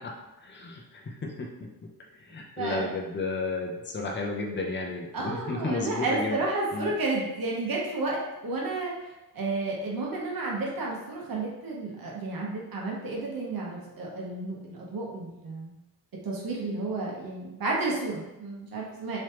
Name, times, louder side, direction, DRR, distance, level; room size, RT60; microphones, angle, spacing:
voice 1, 0.4-1.5 2.3-6.4 6.7-6.9, left 3 dB, 30° left, 0 dB, 0.6 m, -32 dB
voice 2, 2.6-2.9 5.1-8.9 9.3-15.8 16.2-19.2, right 2 dB, 75° right, -3 dB, 1.0 m, -31 dB
3.3 x 3.1 x 2.9 m, 0.98 s
wide cardioid pair, 95°, 36 cm